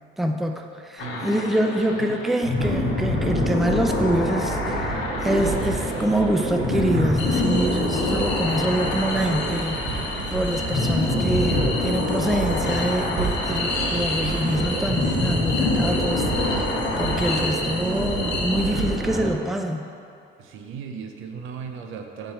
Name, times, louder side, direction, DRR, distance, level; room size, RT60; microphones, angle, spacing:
voice 1, 0.2-19.8, right 1 dB, ahead, 4 dB, 0.4 m, -25 dB
sound 1, 1.0-17.4, left 3 dB, 80° left, 0.9 m, -28 dB
voice 2, 1.0-1.6 1.9-2.2 20.4-22.3, right 6 dB, 75° right, 4 dB, 0.6 m, -36 dB
sound 2, 2.6-19.3, right 2 dB, 45° right, 1.2 m, -28 dB
sound 3, 7.2-19.1, left 3 dB, 60° left, 1.2 m, -32 dB
5.3 x 4.3 x 5.5 m, 2.5 s
cardioid pair, 105°, 21 cm